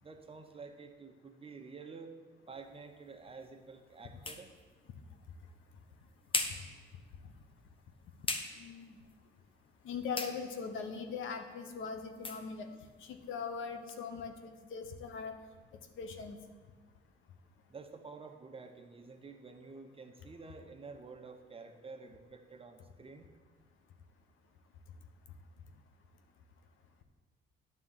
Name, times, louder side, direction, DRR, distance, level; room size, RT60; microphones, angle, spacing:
voice 1, 0.0-2.2 2.5-4.5 17.7-23.3, right 4 dB, 30° right, 5 dB, 0.9 m, -50 dB
sound 1, 2.5-14.0, left 3 dB, 25° left, 0.9 m, -44 dB
voice 2, 8.6-8.9 9.8-12.7 13.1-14.3 14.7-15.3 16.0-16.4, left 5 dB, 80° left, 6 dB, 0.9 m, -40 dB
9.8 x 3.6 x 7.2 m, 1.4 s
cardioid pair, 90°, 20 cm